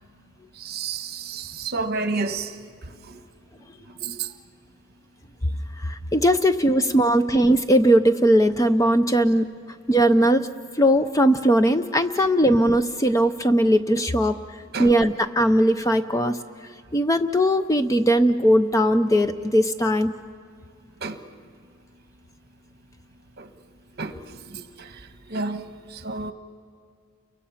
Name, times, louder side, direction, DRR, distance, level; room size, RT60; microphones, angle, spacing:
voice 1, 0.6-2.5 3.1-3.2 4.0-4.3 14.7-14.9 21.0-21.2 23.4-23.5 24.0-24.2 24.5-25.0 25.3-25.6 25.9-26.3, right 4 dB, 45° right, 1.2 m, -30 dB
voice 2, 5.8-9.5 9.9-10.5 10.7-14.4 14.8-16.4 16.9-20.1, equal, 15° left, 0.5 m, -19 dB
30.0 x 24.0 x 5.7 m
head